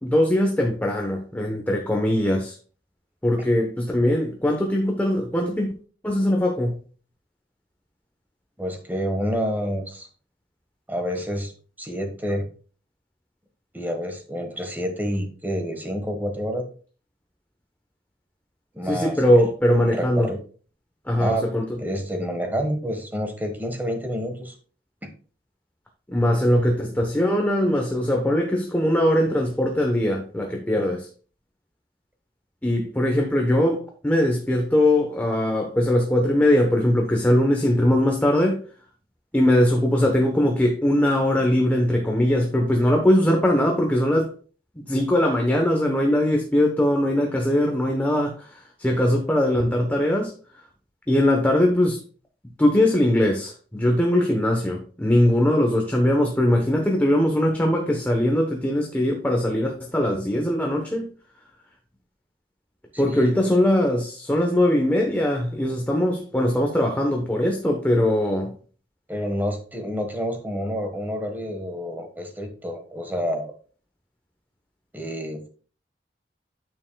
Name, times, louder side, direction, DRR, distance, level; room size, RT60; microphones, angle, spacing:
voice 1, 0.0-2.5 3.2-5.7 6.0-6.8 18.8-20.3 21.1-21.7 26.1-31.1 32.6-38.6 39.3-44.3 44.8-50.3 51.1-52.0 52.6-61.1 63.0-68.5, left 1 dB, 10° left, 1.0 m, -21 dB
voice 2, 8.6-10.1 10.9-11.5 11.8-12.5 13.7-16.6 18.7-19.4 19.8-20.4 21.2-21.5 21.8-24.5 25.0-25.1 30.8-30.9 62.9-63.3 69.1-73.5 74.9-75.5, equal, 10° right, 1.4 m, -28 dB
9.4 x 6.9 x 2.3 m
head